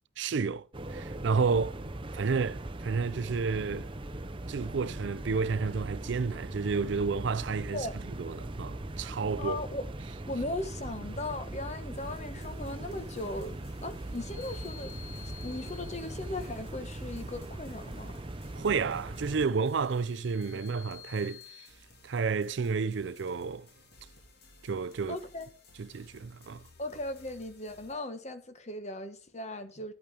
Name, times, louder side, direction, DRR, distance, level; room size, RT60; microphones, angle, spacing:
voice 1, 0.2-1.8 2.1-3.9 4.5-7.9 8.2-9.6 18.6-21.7 22.0-23.7 24.6-25.2 25.8-26.6, right 5 dB, 65° right, 0.4 m, -31 dB
sound 1, 0.7-19.5, right 1 dB, 25° right, 0.7 m, -40 dB
voice 2, 9.4-9.8 10.3-15.0 15.4-18.2 25.1-25.5 26.8-29.9, left 2 dB, 35° left, 1.2 m, -38 dB
sound 2, 11.9-27.9, left 2 dB, 55° left, 2.6 m, -58 dB
sound 3, 14.1-16.6 19.6-21.7, left 14 dB, 80° left, 1.4 m, -51 dB
10.5 x 8.5 x 5.1 m
head